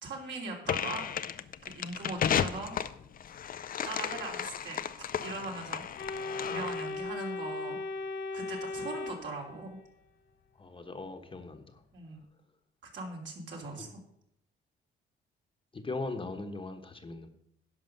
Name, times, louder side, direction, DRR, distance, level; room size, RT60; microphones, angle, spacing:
voice 1, 0.0-1.1 1.7-2.8 3.8-4.8 5.2-5.8 6.4-7.8 8.3-9.8 11.9-12.2 12.8-13.9, right 3 dB, 65° right, 0 dB, 3.1 m, -40 dB
sound 1, 0.6-7.0, left 8 dB, 45° left, 0.5 m, -34 dB
Organ, 6.0-9.9, left 3 dB, 70° left, 1.9 m, -37 dB
voice 2, 10.6-11.8 13.8-13.9 15.7-17.3, left 3 dB, 25° left, 6 dB, 1.2 m, -39 dB
11.0 x 5.5 x 6.6 m, 0.76 s
cardioid pair, 90°, 20 cm